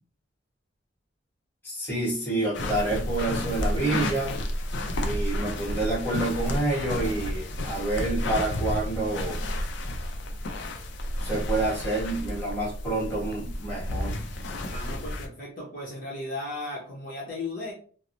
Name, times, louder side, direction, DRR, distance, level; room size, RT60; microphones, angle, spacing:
voice 1, 1.6-4.4 5.0-9.4 11.2-14.2, right 2 dB, 10° left, 1.1 m, -28 dB
walking on carpet, 2.5-15.3, left 1 dB, 70° left, 0.4 m, -31 dB
voice 2, 14.7-17.7, left 2 dB, 45° left, 0.7 m, -36 dB
3.0 x 2.0 x 2.5 m
head